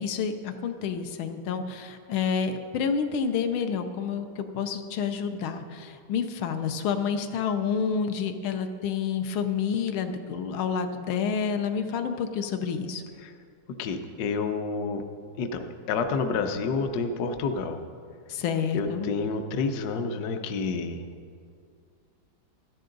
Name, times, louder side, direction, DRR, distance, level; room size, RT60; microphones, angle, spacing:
voice 1, 0.0-13.0 18.3-19.1, left 6 dB, 85° left, 7 dB, 1.6 m, -29 dB
voice 2, 13.8-15.0 15.4-17.8 18.7-21.0, left 4 dB, 65° left, 7 dB, 1.1 m, -29 dB
13.5 x 10.5 x 3.9 m, 2.2 s
omnidirectional pair, 2.2 m